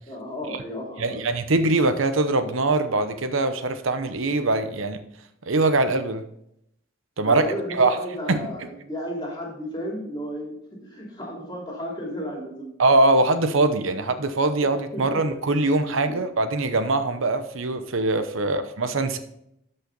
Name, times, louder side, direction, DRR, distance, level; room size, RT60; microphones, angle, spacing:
voice 1, 0.1-1.2 7.2-12.7 14.6-15.0 16.0-16.2 18.4-18.6, equal, 20° left, -2 dB, 3.0 m, -33 dB
voice 2, 1.0-5.0 5.5-6.2 7.2-8.0 8.3-8.4 12.8-19.2, right 2 dB, 75° right, 9 dB, 0.8 m, -22 dB
13.0 x 5.5 x 3.9 m, 0.75 s
head